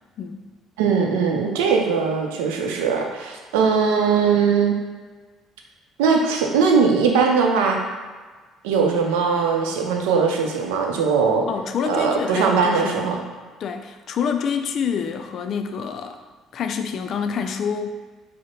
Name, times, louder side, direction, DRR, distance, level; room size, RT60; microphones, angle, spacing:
voice 1, 0.2-0.5 11.5-13.0 13.6-16.2 16.5-17.9, left 6 dB, 60° left, 7 dB, 0.4 m, -27 dB
voice 2, 0.8-4.8 6.0-7.8 8.6-11.5 11.8-13.2, right 5 dB, 85° right, 2 dB, 0.6 m, -20 dB
4.7 x 2.1 x 4.4 m, 1.4 s
supercardioid pair, 65°, 0 cm